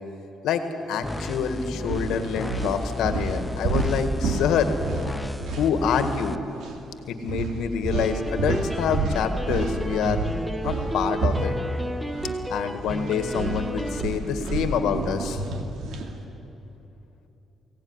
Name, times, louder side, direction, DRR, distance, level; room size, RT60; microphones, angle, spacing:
voice 1, 0.9-4.8 5.5-6.4 7.1-10.2 10.6-11.5 12.5-15.4, left 7 dB, 85° left, 8 dB, 1.9 m, -26 dB
sound 1, 1.0-6.4, left 2 dB, 10° left, 0.6 m, -34 dB
sound 2, 1.1-1.4 1.8-6.3 6.5-6.8 7.3-12.4 12.7-16.1, right 3 dB, 80° right, 2.4 m, -30 dB
sound 3, 7.9-14.0, right 1 dB, 10° right, 1.3 m, -32 dB
23.0 x 17.0 x 9.8 m, 2.9 s
cardioid pair, 90°, 0 cm